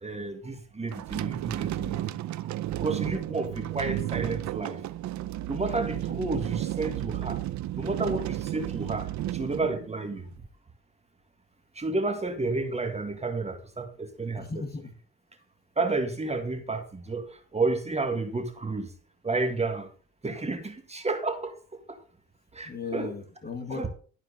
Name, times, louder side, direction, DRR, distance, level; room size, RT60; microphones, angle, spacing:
voice 1, 0.0-2.1 2.4-4.8 5.5-7.4 7.8-10.3 11.8-14.5 15.8-18.9 19.2-19.9 20.2-22.0 22.5-23.1 23.7-23.9, right 3 dB, 20° right, 6 dB, 1.7 m, -31 dB
sound 1, 0.9-10.3, right 14 dB, 70° right, 0.6 m, -33 dB
voice 2, 14.4-14.9 22.7-23.9, left 4 dB, 30° left, 6 dB, 2.0 m, -36 dB
12.5 x 4.5 x 6.7 m, 0.42 s
cardioid pair, 90°, 30 cm